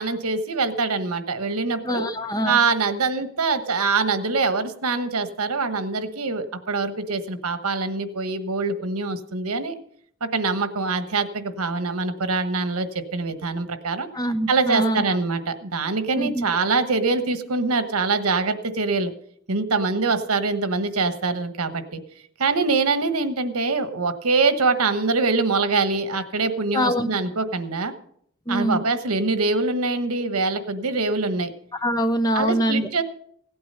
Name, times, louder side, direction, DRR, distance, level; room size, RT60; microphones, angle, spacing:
voice 1, 0.0-2.1 2.4-9.7 10.2-14.1 14.5-19.1 19.5-22.0 22.4-27.9 28.5-31.5 32.3-33.0, right 4 dB, 80° right, 10 dB, 1.2 m, -24 dB
voice 2, 1.8-2.6 14.1-15.0 16.1-16.5 26.7-27.1 28.5-28.8 31.8-32.9, equal, 15° left, 10 dB, 0.7 m, -23 dB
16.5 x 8.7 x 5.6 m, 0.66 s
head